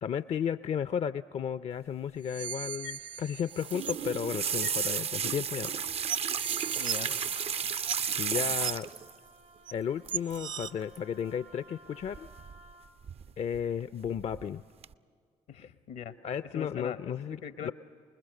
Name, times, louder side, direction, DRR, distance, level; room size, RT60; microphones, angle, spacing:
voice 1, 0.0-5.7 7.5-7.7 8.2-8.9 9.7-12.3 13.4-14.6 16.2-17.7, left 8 dB, 45° left, 15 dB, 0.5 m, -34 dB
sound 1, 2.2-4.1 4.6-4.8 5.6-5.7 6.1-8.2 8.6-8.7 9.7-9.8 10.1-10.7, right 8 dB, 60° right, 0.9 m, -38 dB
sound 2, 3.5-9.1 10.1-10.4 10.6-11.0 12.1-12.7 13.0-13.6 14.0-14.4 14.8-14.9, right 7 dB, 45° right, 0.5 m, -33 dB
Wind instrument woodwind instrument, 6.6-12.9, right 2 dB, 80° right, 1.9 m, -56 dB
voice 2, 6.8-7.2 15.5-16.1 16.5-17.7, left 8 dB, 75° left, 12 dB, 1.0 m, -41 dB
26.0 x 20.5 x 6.5 m, 2.1 s
hypercardioid pair, 45°, 15 cm